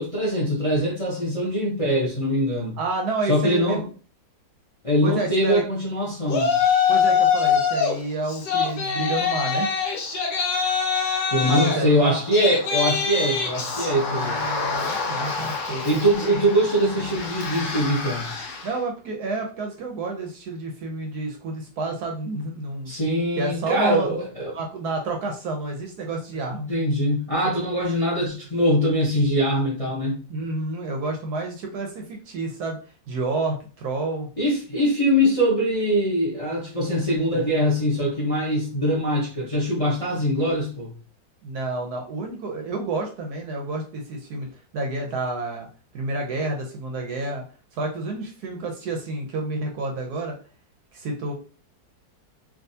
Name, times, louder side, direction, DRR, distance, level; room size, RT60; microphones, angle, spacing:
voice 1, 0.0-2.8 3.3-3.8 4.8-6.6 11.3-14.4 15.8-18.3 22.9-24.5 26.7-30.2 34.4-40.9, equal, 30° left, -4 dB, 0.6 m, -23 dB
voice 2, 2.8-3.8 5.0-5.6 6.9-9.7 11.5-12.2 13.9-16.0 18.6-22.9 23.4-26.7 30.3-32.8 33.1-34.3 41.4-44.5 44.7-45.7 45.9-47.4 47.7-50.4 50.9-51.3, right 2 dB, 70° right, 2 dB, 1.1 m, -29 dB
Yell, 6.3-7.9 8.3-18.7, left 6 dB, 65° left, 1.3 m, -25 dB
3.6 x 2.6 x 2.7 m, 0.38 s
omnidirectional pair, 2.0 m